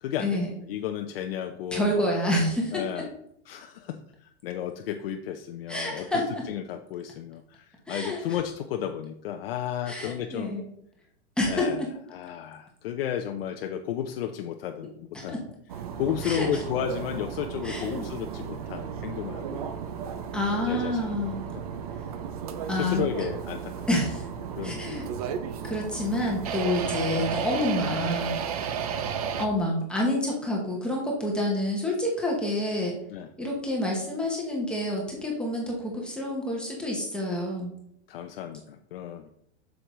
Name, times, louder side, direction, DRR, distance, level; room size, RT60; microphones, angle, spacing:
voice 1, 0.0-2.1 2.7-3.1 3.5-10.6 11.5-11.8 12.1-15.4 16.0-19.8 20.7-21.2 22.5-23.9 24.6-25.1 33.1-33.3 38.1-39.3, left 10 dB, 55° left, 5 dB, 0.6 m, -33 dB
voice 2, 1.7-2.8 5.7-6.4 7.9-8.4 9.9-10.6 11.4-11.9 15.1-15.4 16.2-16.5 17.6-18.1 20.3-21.4 22.7-23.0 23.9-24.3 24.6-25.1 25.6-29.0 29.4-32.9 33.4-37.7, left 1 dB, 5° left, -3 dB, 0.8 m, -28 dB
sound 1, 15.7-29.5, right 7 dB, 35° right, 0.4 m, -34 dB
7.9 x 6.3 x 3.1 m, 0.73 s
supercardioid pair, 175°, 34 cm